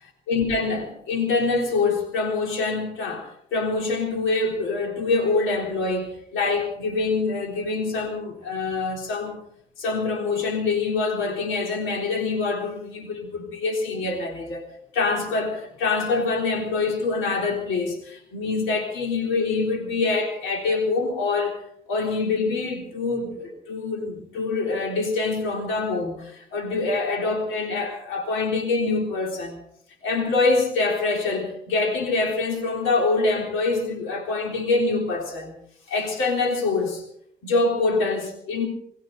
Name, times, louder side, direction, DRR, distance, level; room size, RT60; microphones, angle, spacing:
voice 1, 0.3-9.4 9.8-14.7 14.9-21.6 21.9-29.6 30.0-35.6 35.9-37.0 37.4-38.7, left 3 dB, 90° left, 3.6 m, -25 dB
22.5 x 16.0 x 3.9 m
cardioid pair, 90°, 20 cm